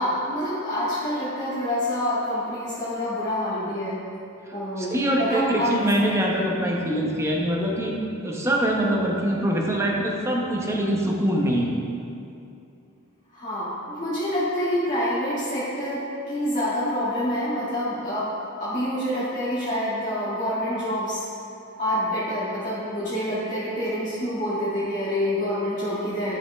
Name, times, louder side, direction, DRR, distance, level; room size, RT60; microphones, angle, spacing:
voice 1, 0.0-4.0 4.5-5.9 13.3-18.3 18.6-21.2 21.8-26.4, equal, 35° left, -11 dB, 1.9 m, -27 dB
voice 2, 4.8-11.7, right 1 dB, 10° right, -2 dB, 0.8 m, -24 dB
11.5 x 5.2 x 3.4 m, 2.7 s
head